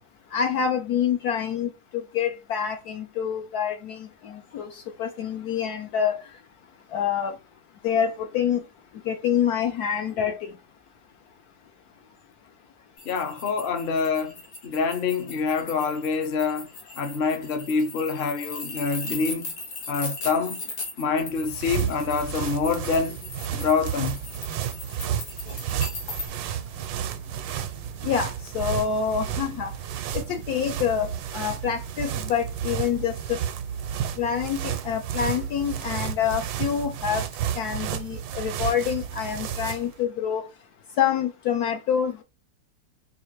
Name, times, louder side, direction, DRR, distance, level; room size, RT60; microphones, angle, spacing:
voice 1, 0.3-6.2 6.9-7.3 7.8-8.6 9.0-10.5 28.0-29.7 30.1-33.4 34.2-37.2 37.6-40.4 41.0-42.2, left 8 dB, 70° left, 1.0 m, -27 dB
sound 1, 13.0-26.3, left 3 dB, 90° left, 2.0 m, -38 dB
voice 2, 13.0-14.4 14.6-16.7 17.0-19.5 19.9-20.6 21.0-23.2 23.5-24.2, left 5 dB, 50° left, 0.6 m, -26 dB
sound 2, 21.2-40.0, right 9 dB, 85° right, 1.3 m, -32 dB
4.8 x 2.5 x 3.0 m
omnidirectional pair, 2.0 m